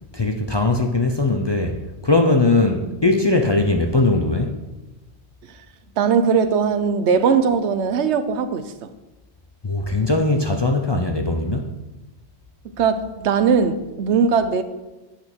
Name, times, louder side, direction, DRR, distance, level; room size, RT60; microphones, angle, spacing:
voice 1, 0.1-1.8 2.0-4.6 9.6-11.8, left 2 dB, 30° left, 3 dB, 0.5 m, -20 dB
voice 2, 6.0-8.7 12.8-14.6, right 6 dB, 80° right, 10 dB, 1.0 m, -19 dB
8.5 x 5.5 x 6.1 m, 1.1 s
omnidirectional pair, 1.1 m